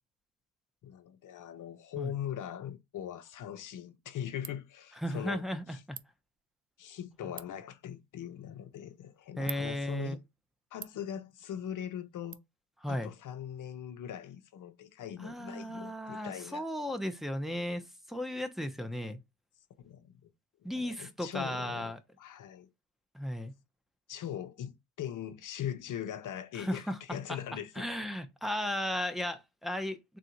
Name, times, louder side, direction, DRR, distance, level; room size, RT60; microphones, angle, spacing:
voice 1, 0.8-5.4 5.7-5.8 6.8-10.2 10.7-12.4 12.9-16.6 19.8-20.2 20.7-22.7 24.1-27.9, left 10 dB, 50° left, 0.7 m, -41 dB
Ratchet pawl, 3.3-12.3, right 10 dB, 35° right, 0.4 m, -52 dB
voice 2, 5.0-6.0 9.4-10.2 12.8-13.1 15.2-19.2 20.6-22.0 23.1-23.5 26.6-27.0 27.3-27.4 27.8-30.2, left 1 dB, ahead, 0.7 m, -35 dB
3.8 x 2.5 x 4.4 m
cardioid pair, 95°, 40 cm